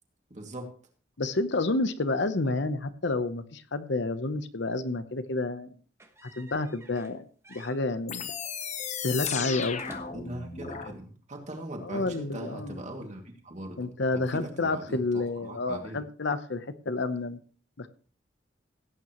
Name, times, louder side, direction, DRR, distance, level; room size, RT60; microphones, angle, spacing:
voice 1, 0.3-0.7 2.4-2.6 10.1-16.0, right 1 dB, 40° right, 2 dB, 2.4 m, -41 dB
voice 2, 1.2-5.7 6.4-8.3 8.9-9.8 11.8-12.8 13.8-17.4 17.8-17.9, left 2 dB, 65° left, 11 dB, 0.8 m, -30 dB
sound 1, 6.0-7.2 7.4-7.8 9.2-10.4, right 1 dB, 15° right, 1.2 m, -50 dB
sound 2, 8.1-10.9, left 7 dB, 40° left, 0.9 m, -34 dB
17.0 x 9.0 x 3.0 m, 0.41 s
head